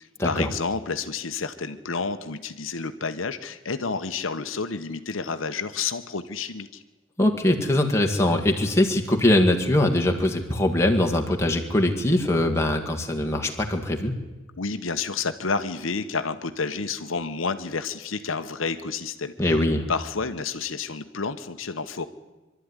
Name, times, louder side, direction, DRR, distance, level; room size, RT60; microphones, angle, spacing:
voice 1, 0.2-6.8 14.5-19.5 19.9-22.1, left 4 dB, 85° left, 9 dB, 1.1 m, -30 dB
voice 2, 7.2-14.1 19.4-19.9, left 1 dB, 15° left, 2 dB, 2.0 m, -22 dB
23.5 x 12.5 x 9.8 m, 1.1 s
head